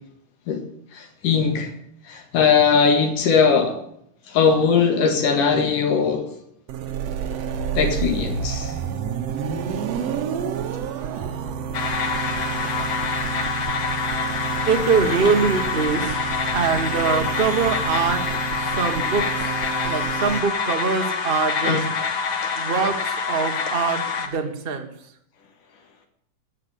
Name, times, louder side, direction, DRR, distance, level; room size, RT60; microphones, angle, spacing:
voice 1, 0.9-1.7 2.1-3.8 4.3-6.3 7.8-8.7 21.6-21.9, left 6 dB, 80° left, 4 dB, 3.4 m, -19 dB
sound 1, 6.7-20.4, right 7 dB, 60° right, 1.9 m, -29 dB
sound 2, 11.7-24.3, left 5 dB, 50° left, 1.9 m, -26 dB
voice 2, 14.7-16.2 16.5-18.4 18.7-19.5 19.8-21.8 22.6-24.9, right 5 dB, 40° right, 4 dB, 0.8 m, -23 dB
16.5 x 6.6 x 8.3 m, 0.73 s
omnidirectional pair, 3.7 m